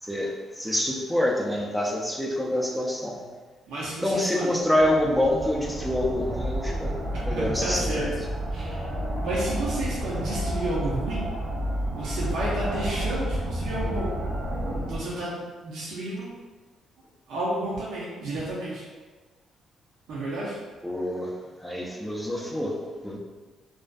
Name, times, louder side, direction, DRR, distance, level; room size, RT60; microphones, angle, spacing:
voice 1, 0.0-3.2 4.0-7.0 7.2-8.1 20.8-21.3 21.6-22.8 23.0-23.2, left 1 dB, ahead, -2 dB, 0.3 m, -26 dB
voice 2, 3.7-4.6 7.3-8.1 8.5-8.9 9.2-11.2 11.9-14.1 14.8-15.3 15.6-16.3 17.3-18.8 20.1-20.6, right 1 dB, 80° right, -7 dB, 0.5 m, -31 dB
sound 1, 4.8-15.0, right 1 dB, 40° right, 0.6 m, -30 dB
2.4 x 2.4 x 2.2 m, 1.3 s
cardioid pair, 130°, 0 cm